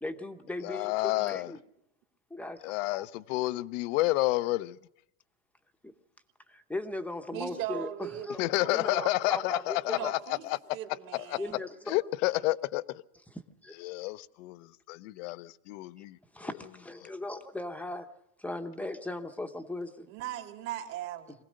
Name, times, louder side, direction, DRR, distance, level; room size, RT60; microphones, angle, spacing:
voice 1, 0.0-1.6 2.3-3.0 5.8-5.9 6.5-8.4 8.7-9.6 9.9-10.1 11.4-11.7 13.6-13.7 16.3-18.1 18.4-20.1, left 2 dB, 5° left, 0.9 m, -38 dB
voice 2, 0.6-1.5 2.6-4.8 8.4-10.6 11.1-13.0 13.8-16.2 17.0-17.1, left 19 dB, 65° left, 0.8 m, -30 dB
voice 3, 7.3-8.3 8.6-9.4 9.9-10.4 10.7-11.6 20.1-21.3, right 12 dB, 50° right, 2.4 m, -39 dB
24.0 x 17.0 x 6.4 m
supercardioid pair, 155°, 40 cm